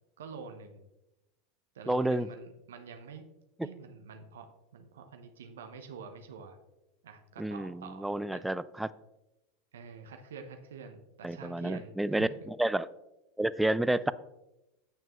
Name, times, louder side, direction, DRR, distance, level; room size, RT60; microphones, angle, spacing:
voice 1, 0.2-0.9 1.7-3.3 3.6-6.6 7.0-8.4 9.7-12.4, right 5 dB, 85° right, 6 dB, 0.7 m, -47 dB
voice 2, 1.9-2.3 7.4-8.9 11.2-12.9 13.4-14.1, right 1 dB, 5° right, 17 dB, 0.3 m, -30 dB
8.9 x 6.7 x 3.0 m, 0.94 s
hypercardioid pair, 95°, 0 cm